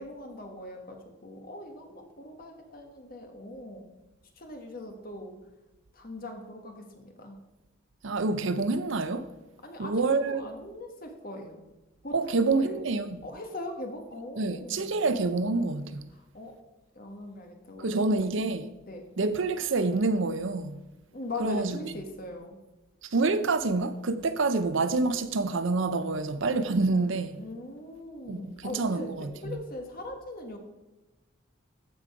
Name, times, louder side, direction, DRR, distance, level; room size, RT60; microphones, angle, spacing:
voice 1, 0.0-3.9 4.3-5.4 5.9-7.4 9.6-11.6 12.0-12.8 13.2-15.1 16.1-16.6 16.9-18.4 18.9-19.1 21.1-22.6 27.4-30.6, left 1 dB, 45° left, 1.4 m, -41 dB
voice 2, 8.0-9.3 9.8-10.4 12.1-13.2 14.4-16.0 17.8-18.7 19.2-20.8 21.4-21.8 23.1-27.4 28.3-29.6, right 3 dB, 65° right, 0.6 m, -27 dB
14.0 x 5.2 x 4.9 m
head